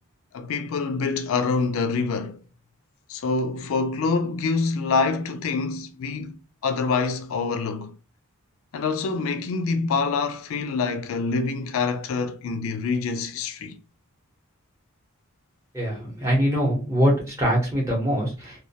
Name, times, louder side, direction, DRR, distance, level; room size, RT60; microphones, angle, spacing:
voice 1, 0.3-2.4 3.1-6.3 6.6-7.9 8.7-13.7, left 4 dB, 70° left, 0.3 m, -26 dB
voice 2, 15.7-18.6, equal, 15° right, 0.8 m, -23 dB
2.2 x 2.1 x 2.7 m
head